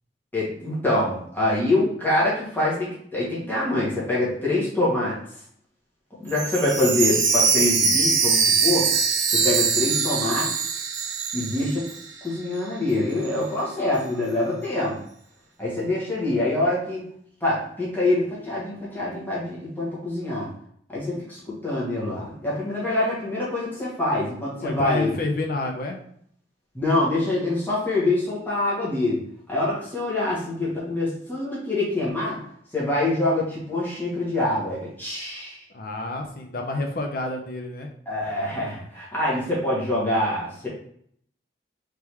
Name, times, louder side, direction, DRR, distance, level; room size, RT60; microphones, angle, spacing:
voice 1, 0.3-5.1 6.2-8.9 9.3-10.5 11.3-11.9 12.2-15.0 15.6-17.0 17.4-20.5 20.9-25.1 26.7-29.2 29.5-32.4 32.7-35.6 38.1-40.7, left 2 dB, 10° left, -7 dB, 1.3 m, -25 dB
Chime, 6.3-12.3 12.6-12.7 13.2-13.3, right 5 dB, 85° right, 0.7 m, -22 dB
voice 2, 24.6-26.0 35.7-37.9, left 2 dB, 55° left, 2 dB, 0.6 m, -29 dB
3.6 x 3.3 x 3.0 m, 0.65 s
head